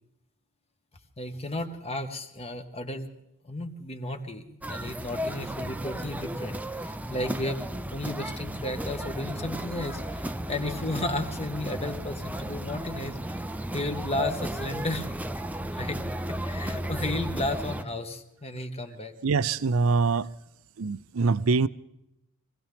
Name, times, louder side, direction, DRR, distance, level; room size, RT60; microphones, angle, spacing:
voice 1, 1.2-3.2 3.4-13.4 13.7-15.2 15.7-16.0 16.3-19.1, left 1 dB, 30° left, 1.4 m, -34 dB
sound 1, 4.6-17.8, right 1 dB, 5° right, 0.5 m, -34 dB
voice 2, 19.2-20.3 20.8-21.7, right 4 dB, 75° right, 0.5 m, -24 dB
24.5 x 17.0 x 3.5 m
head